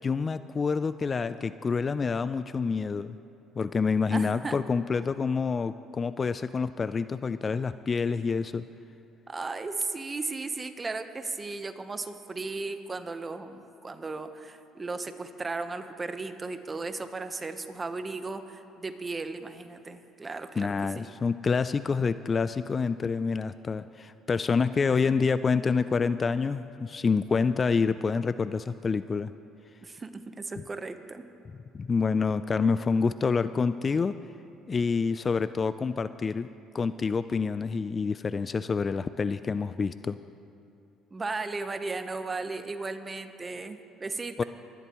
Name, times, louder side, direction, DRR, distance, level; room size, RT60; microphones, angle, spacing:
voice 1, 0.0-3.2 3.6-8.6 20.6-29.3 31.7-34.1 34.7-36.5 36.7-40.2 44.4-44.5, left 5 dB, 35° left, 13 dB, 0.3 m, -27 dB
voice 2, 4.1-4.6 9.3-21.1 29.8-31.3 41.1-44.4, right 3 dB, 25° right, 9 dB, 0.9 m, -36 dB
22.5 x 11.5 x 3.1 m, 2.6 s
supercardioid pair, 80°, 0 cm